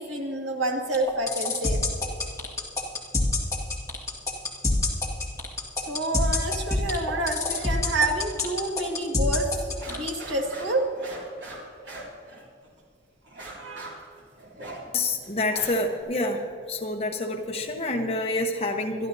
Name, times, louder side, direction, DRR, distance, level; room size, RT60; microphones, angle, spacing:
voice 1, 0.0-1.8 5.9-9.5 9.9-10.8 13.6-14.0, right 2 dB, 80° right, 0 dB, 2.1 m, -28 dB
sound 1, 0.9-10.1, left 2 dB, 15° left, 1.9 m, -25 dB
sound 2, 7.5-7.7 8.0-8.8 9.1-9.2 9.5-12.8 13.3-16.0, right 2 dB, 60° right, 3.2 m, -41 dB
voice 2, 14.9-16.4 16.7-19.1, left 2 dB, 30° left, 2 dB, 1.1 m, -27 dB
25.5 x 12.0 x 2.8 m, 2.3 s
head